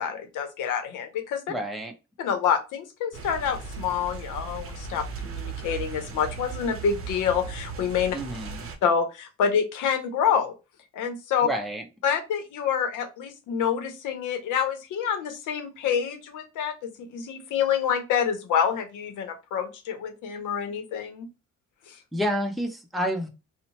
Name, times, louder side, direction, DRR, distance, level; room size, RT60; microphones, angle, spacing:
voice 1, 0.0-1.4 2.2-8.2 8.8-10.5 10.9-11.5 12.0-21.3 21.9-22.0, left 7 dB, 85° left, 7 dB, 0.7 m, -27 dB
voice 2, 1.5-1.9 8.1-8.6 11.4-11.8 22.1-23.3, equal, ahead, 3 dB, 0.6 m, -29 dB
sound 1, 3.1-8.8, right 5 dB, 45° right, 0.7 m, -37 dB
2.7 x 2.1 x 2.9 m, 0.28 s
cardioid pair, 90°, 30 cm